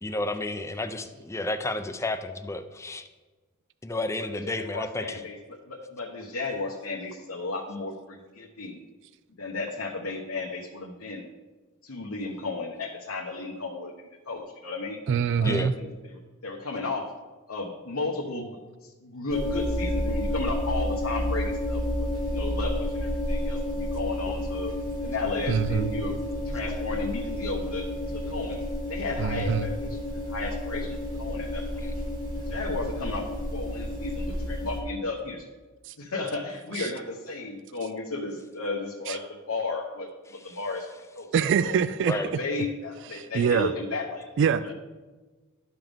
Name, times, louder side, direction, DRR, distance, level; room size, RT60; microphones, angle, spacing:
voice 1, 0.0-3.1 3.8-5.2 15.4-15.7 42.1-42.3, left 2 dB, 15° left, 9 dB, 0.5 m, -31 dB
voice 2, 4.4-5.4 5.7-8.8 9.3-11.3 11.8-15.0 15.4-17.1 17.5-24.7 25.0-26.2 26.4-27.9 28.1-28.6 28.9-31.9 32.4-35.4 36.0-40.9 41.1-41.3 41.6-41.8 42.1-44.2 44.6-44.7, left 3 dB, 85° left, -2 dB, 1.0 m, -34 dB
voice 3, 15.1-15.7 25.5-25.9 29.2-29.7 35.9-36.0 36.8-36.9 39.1-39.2 41.3-42.1 43.1-43.7 44.4-44.7, right 7 dB, 60° right, 14 dB, 0.3 m, -24 dB
sound 1, 19.3-34.8, left 1 dB, 40° right, 2.3 m, -30 dB
12.0 x 5.7 x 3.5 m, 1.3 s
head